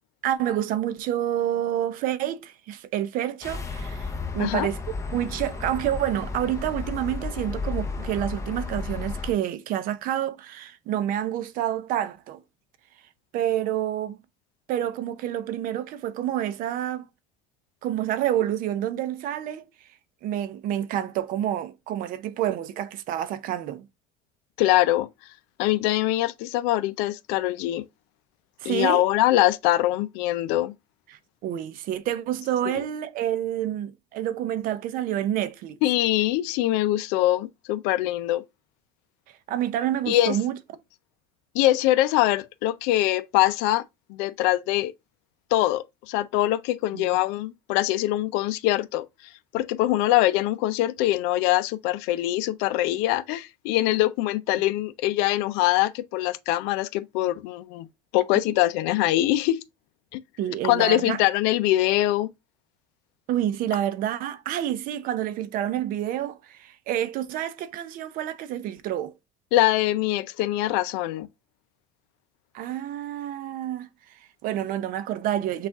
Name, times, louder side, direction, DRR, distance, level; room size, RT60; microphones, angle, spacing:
voice 1, 0.2-4.8 5.1-12.4 13.3-14.2 14.7-17.1 17.8-19.7 20.2-23.8 28.6-29.0 31.4-35.8 39.5-40.5 46.9-47.2 60.4-61.2 63.3-69.1 72.5-75.7, right 11 dB, 50° right, 0.6 m, -28 dB
sound 1, 3.4-9.3, left 4 dB, 15° left, 0.8 m, -33 dB
voice 2, 24.6-25.1 25.6-27.8 28.6-30.7 35.8-38.4 40.1-40.4 41.5-43.8 44.1-44.9 45.5-49.1 49.5-57.9 58.1-59.6 60.1-60.2 60.6-62.3 69.5-71.3, left 15 dB, 70° left, 0.5 m, -23 dB
6.2 x 2.5 x 3.4 m
cardioid pair, 135°, 18 cm